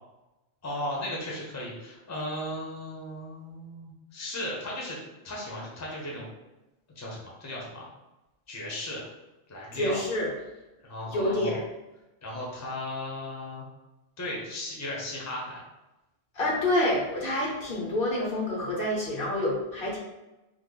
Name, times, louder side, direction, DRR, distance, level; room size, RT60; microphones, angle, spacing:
voice 1, 0.6-5.0 5.2-6.3 7.0-7.9 8.5-9.0 9.5-10.0 10.8-11.6 12.2-13.7 14.2-15.6, left 1 dB, 20° left, -4 dB, 0.6 m, -36 dB
voice 2, 9.7-10.3 11.1-11.6 16.3-20.0, left 1 dB, 60° left, -2 dB, 0.9 m, -27 dB
3.2 x 2.0 x 3.7 m, 1.0 s
omnidirectional pair, 1.1 m